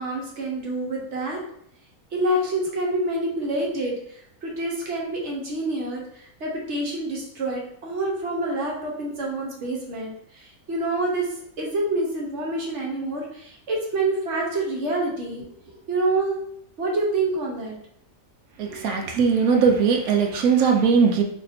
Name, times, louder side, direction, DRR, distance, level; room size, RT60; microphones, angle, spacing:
voice 1, 0.0-1.4 2.1-3.9 4.4-11.3 11.6-16.4 16.8-17.7, right 2 dB, 55° right, -2 dB, 1.1 m, -27 dB
voice 2, 18.6-21.2, right 6 dB, 75° right, 3 dB, 1.1 m, -19 dB
2.9 x 2.6 x 4.1 m, 0.68 s
omnidirectional pair, 1.6 m